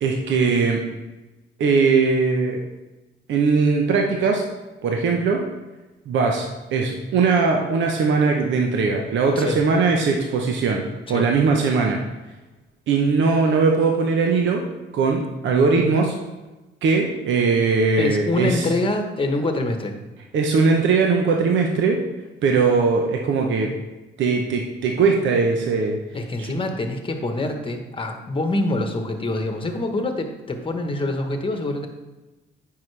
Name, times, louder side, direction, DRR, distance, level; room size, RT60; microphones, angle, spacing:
voice 1, 0.0-0.8 1.6-2.6 3.3-4.4 4.8-5.4 6.1-10.8 11.1-12.0 12.9-14.6 14.9-16.2 16.8-18.7 20.3-22.0 22.4-23.7 24.2-26.0 26.4-26.5, right 4 dB, 70° right, 2 dB, 0.9 m, -20 dB
voice 2, 18.0-20.0 26.1-31.9, left 2 dB, 25° left, 5 dB, 1.1 m, -25 dB
9.0 x 5.7 x 3.3 m, 1.1 s
cardioid pair, 90°, 20 cm